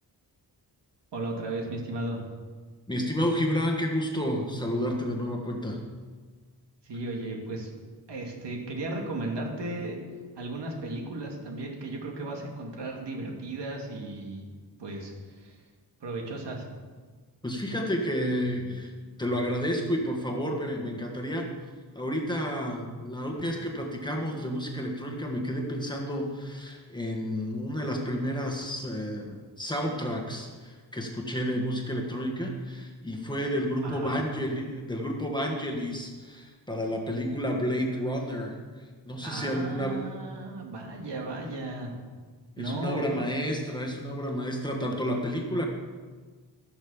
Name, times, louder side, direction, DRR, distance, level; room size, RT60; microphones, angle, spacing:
voice 1, 1.1-2.2 6.8-7.7 8.1-10.0 10.4-14.5 14.8-15.6 16.0-16.7 33.8-34.2 39.2-41.9 42.6-43.1, right 2 dB, 80° right, 1 dB, 2.4 m, -35 dB
voice 2, 2.9-5.8 17.4-18.9 19.2-21.5 21.9-38.6 39.0-40.2 42.6-45.7, equal, 10° left, 1 dB, 1.5 m, -30 dB
15.5 x 6.5 x 7.1 m, 1.4 s
wide cardioid pair, 170°, 41 cm